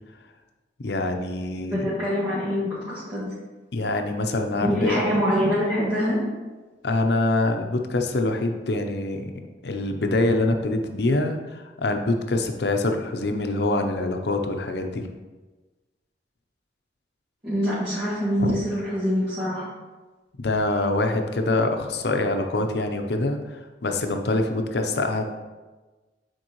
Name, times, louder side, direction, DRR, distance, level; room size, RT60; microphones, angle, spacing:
voice 1, 0.8-1.9 3.7-5.0 6.8-9.3 9.6-15.1 18.4-18.6 20.4-25.3, left 2 dB, 65° left, 5 dB, 0.7 m, -25 dB
voice 2, 1.6-3.3 4.5-6.2 17.4-19.6, equal, 30° right, -13 dB, 2.2 m, -25 dB
8.9 x 4.5 x 3.0 m, 1.2 s
head